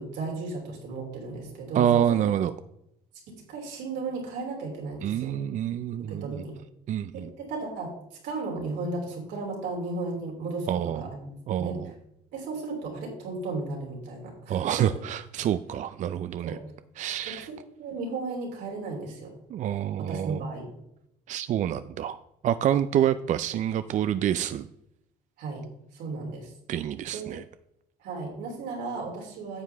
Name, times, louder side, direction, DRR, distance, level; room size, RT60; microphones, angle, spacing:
voice 1, 0.0-2.2 3.3-5.4 6.0-6.5 7.1-7.9 8.2-11.7 12.3-14.9 16.4-16.6 17.3-17.4 17.8-19.4 20.0-20.7 25.4-25.6 25.9-26.5 27.1-27.3 28.0-29.6, right 3 dB, 85° right, -1 dB, 3.1 m, -35 dB
voice 2, 1.7-2.5 5.0-6.4 6.9-7.3 10.7-11.0 11.5-11.9 14.5-16.6 17.0-17.5 19.5-20.5 21.3-24.7 26.7-27.4, right 10 dB, 45° right, 13 dB, 0.4 m, -27 dB
9.6 x 7.4 x 3.4 m, 0.81 s
cardioid pair, 110°, 17 cm